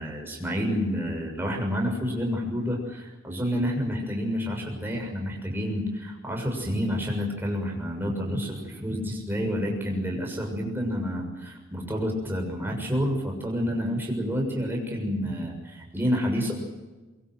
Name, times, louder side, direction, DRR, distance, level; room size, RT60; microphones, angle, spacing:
voice 1, 0.0-16.6, equal, 10° right, 1 dB, 6.8 m, -29 dB
23.5 x 23.0 x 7.9 m, 1.2 s
head